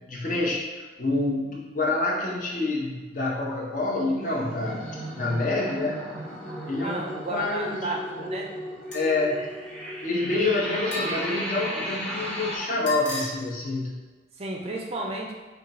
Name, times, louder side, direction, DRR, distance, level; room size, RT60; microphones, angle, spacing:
voice 1, 0.0-6.0 6.7-7.9 8.2-8.3 8.9-9.5 10.0-14.0, left 2 dB, 45° left, -2 dB, 0.6 m, -27 dB
sound 1, 4.2-12.6, equal, 5° left, 0.7 m, -35 dB
voice 2, 6.8-8.5 14.4-15.3, right 2 dB, 30° right, 0 dB, 0.4 m, -32 dB
sound 2, 8.9-9.3 10.9-11.5 12.9-13.3, equal, 75° left, 1.0 m, -35 dB
3.8 x 2.2 x 4.0 m, 1.3 s
head